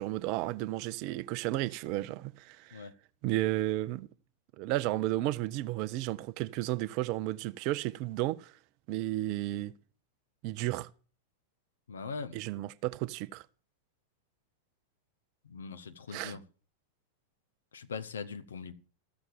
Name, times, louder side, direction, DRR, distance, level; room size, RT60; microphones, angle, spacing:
voice 1, 0.0-2.8 3.2-4.1 4.6-8.5 8.9-9.7 10.4-10.9 12.3-13.4 16.1-16.4, right 16 dB, 45° right, 0.6 m, -33 dB
voice 2, 11.9-12.4 15.4-16.4 17.7-18.7, left 5 dB, 70° left, 1.1 m, -41 dB
14.0 x 7.1 x 7.0 m
figure-of-eight pair, 90°, 0 cm